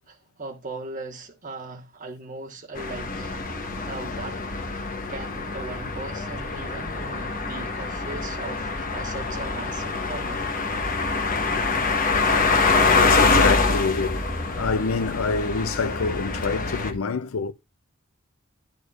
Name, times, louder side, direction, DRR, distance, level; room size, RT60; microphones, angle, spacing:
voice 1, 0.1-4.4 5.1-10.6, right 3 dB, 40° right, 1.4 m, -38 dB
sound 1, 2.8-16.9, left 3 dB, 40° left, 1.1 m, -25 dB
voice 2, 12.3-17.5, left 4 dB, 85° left, 0.6 m, -27 dB
11.0 x 6.7 x 2.4 m
head